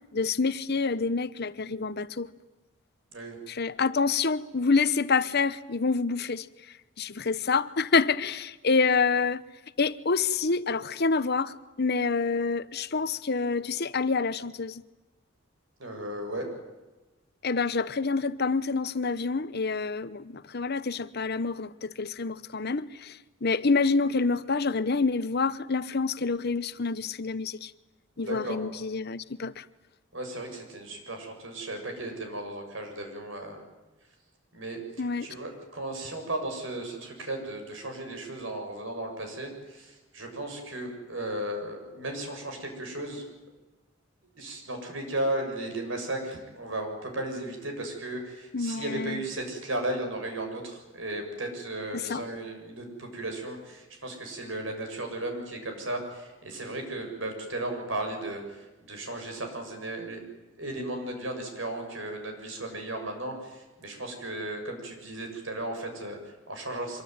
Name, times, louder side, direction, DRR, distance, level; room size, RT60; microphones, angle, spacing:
voice 1, 0.1-2.3 3.5-6.5 7.0-9.4 9.8-14.8 17.4-27.7 28.2-29.6 35.0-35.3 48.5-49.2 51.9-52.2, left 4 dB, 55° left, 0.9 m, -27 dB
voice 2, 15.8-16.5 28.2-28.6 30.1-33.6 34.5-43.2 44.4-60.2 60.6-67.0, right 1 dB, 70° right, 6.8 m, -35 dB
25.5 x 23.0 x 9.5 m
head